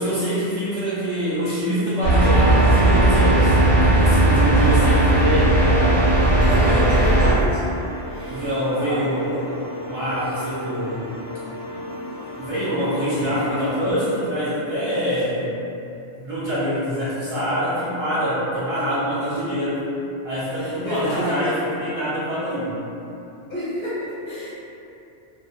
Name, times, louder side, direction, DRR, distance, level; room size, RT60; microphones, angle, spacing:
voice 1, 0.0-5.8 6.4-7.0 8.3-9.3 9.9-11.1 12.4-15.8 16.2-19.9 20.2-22.7, equal, 55° right, -13 dB, 0.3 m, -25 dB
sound 1, 2.0-7.3, right 1 dB, 75° right, 0.9 m, -16 dB
sound 2, 4.6-13.9, left 1 dB, 30° left, 0.6 m, -35 dB
voice 2, 6.4-7.6 8.0-9.1 18.7-18.9 20.5-21.4 21.7-21.9 23.5-24.5, equal, 55° left, -13 dB, 0.9 m, -29 dB
2.3 x 2.1 x 2.5 m, 2.8 s
omnidirectional pair, 1.2 m